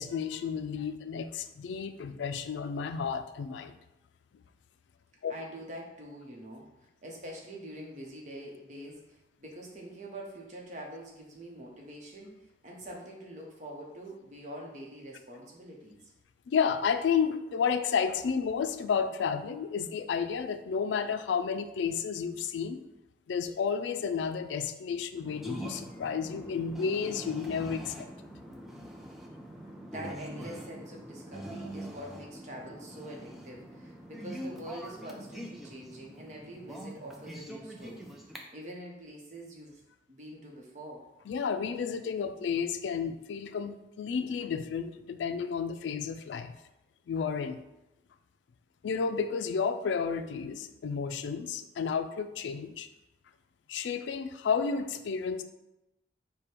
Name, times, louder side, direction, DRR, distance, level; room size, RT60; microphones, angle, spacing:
voice 1, 0.0-3.8 5.2-5.3 16.5-22.9 23.3-28.1 41.3-46.5 47.1-47.6 48.8-52.9 53.7-55.4, left 6 dB, 90° left, 10 dB, 0.3 m, -31 dB
voice 2, 5.3-6.7 7.0-16.1 29.9-38.1 38.5-39.8 40.1-41.0, right 1 dB, 40° right, -1 dB, 0.9 m, -45 dB
sound 1, 25.2-38.4, right 1 dB, ahead, 0.4 m, -44 dB
5.0 x 2.2 x 4.3 m, 0.94 s
head